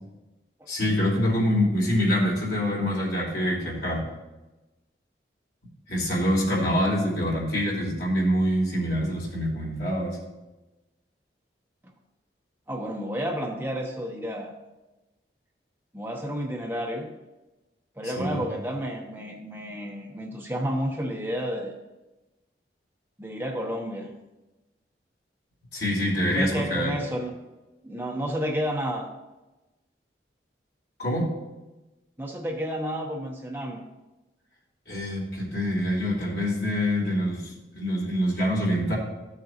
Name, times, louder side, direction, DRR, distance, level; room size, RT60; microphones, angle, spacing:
voice 1, 0.7-4.0 5.9-10.2 18.0-18.4 25.7-26.9 31.0-31.3 34.9-39.0, equal, 75° left, -5 dB, 3.2 m, -25 dB
voice 2, 12.7-14.5 15.9-17.1 18.0-21.8 23.2-24.1 26.3-27.3 27.8-29.1 32.2-33.8, equal, 10° right, 0 dB, 0.9 m, -31 dB
13.5 x 6.5 x 2.9 m, 1.1 s
head